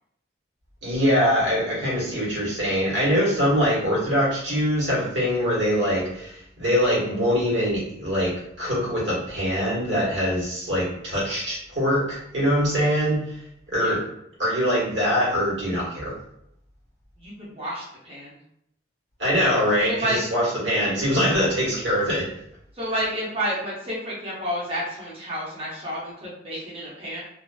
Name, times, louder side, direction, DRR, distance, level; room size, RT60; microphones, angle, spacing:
voice 1, 0.8-8.3 8.6-13.4 13.7-14.0 14.4-16.1 19.2-22.2 22.9-23.0, equal, 70° right, -5 dB, 1.2 m, -23 dB
voice 2, 17.2-18.4 19.8-20.2 22.7-27.2, equal, 30° right, -6 dB, 0.6 m, -30 dB
2.4 x 2.4 x 2.2 m, 0.75 s
head